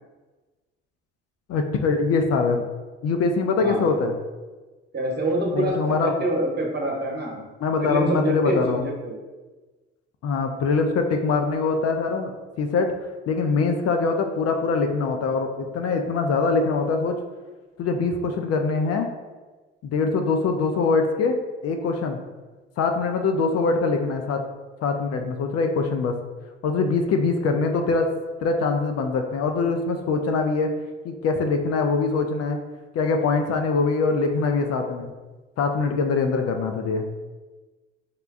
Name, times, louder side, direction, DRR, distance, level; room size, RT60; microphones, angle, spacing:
voice 1, 1.5-2.6 3.0-4.1 5.5-6.3 7.6-8.9 10.2-12.3 12.6-12.9 13.3-17.1 17.8-19.1 19.8-21.4 21.6-22.2 22.8-24.4 24.8-26.1 26.6-28.1 28.4-30.7 31.0-32.6 32.9-35.1 35.6-37.1, left 4 dB, 50° left, 4 dB, 0.5 m, -23 dB
voice 2, 4.9-7.3 7.8-9.2, right 1 dB, 35° right, -1 dB, 1.1 m, -26 dB
5.0 x 2.2 x 2.5 m, 1.2 s
hypercardioid pair, 55°, 31 cm